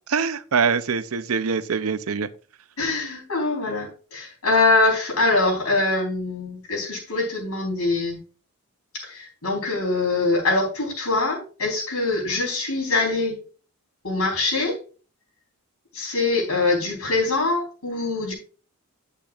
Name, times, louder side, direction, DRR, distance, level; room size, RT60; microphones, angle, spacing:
voice 1, 0.1-2.3, right 5 dB, 75° right, 0.6 m, -24 dB
voice 2, 2.8-8.2 9.0-13.4 14.0-14.8 15.9-18.3, left 3 dB, 85° left, 4.2 m, -23 dB
10.0 x 8.2 x 2.5 m
head